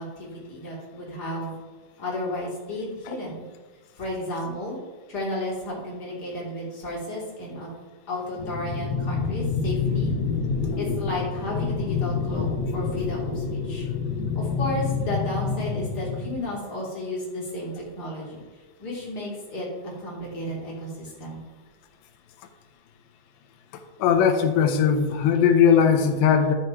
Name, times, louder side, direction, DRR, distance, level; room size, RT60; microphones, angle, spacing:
voice 1, 0.0-1.6 2.0-3.4 4.0-4.8 5.1-7.7 8.1-10.1 10.8-12.5 12.7-13.9 14.3-18.4 18.8-21.4, left 1 dB, 25° left, -5 dB, 3.1 m, -33 dB
sound 1, 8.4-16.4, left 5 dB, 70° left, 2.6 m, -27 dB
voice 2, 24.0-26.5, left 7 dB, 85° left, 6 dB, 3.2 m, -19 dB
12.0 x 6.4 x 4.6 m, 1.3 s
omnidirectional pair, 5.0 m